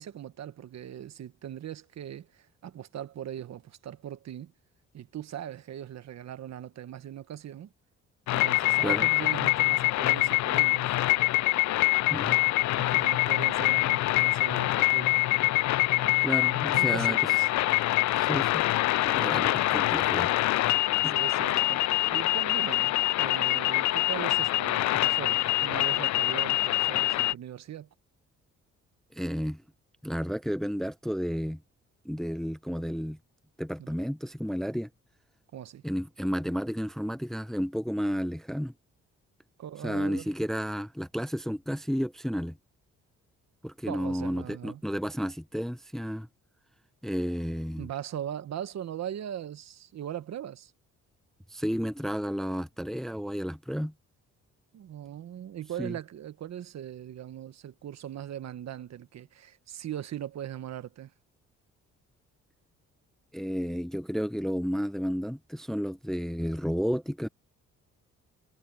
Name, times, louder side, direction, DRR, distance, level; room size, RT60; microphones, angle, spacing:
voice 1, 0.0-4.5 4.9-7.7 8.3-11.0 12.8-15.2 15.9-16.2 16.7-17.5 21.0-21.8 22.1-27.9 33.8-33.9 35.5-35.8 39.6-40.3 43.9-44.8 47.8-50.7 54.7-61.1, right 10 dB, 60° right, 1.3 m, -40 dB
sound 1, 8.3-27.3, left 17 dB, 65° left, 0.4 m, -25 dB
voice 2, 16.2-17.2 18.1-18.6 19.0-20.3 21.0-21.1 29.1-29.6 30.0-31.6 32.0-33.2 33.6-34.9 35.8-38.7 39.8-42.5 43.6-46.3 47.0-47.9 51.5-53.9 55.8-55.9 63.3-67.3, equal, ahead, 0.7 m, -32 dB
cardioid pair, 90°, 30 cm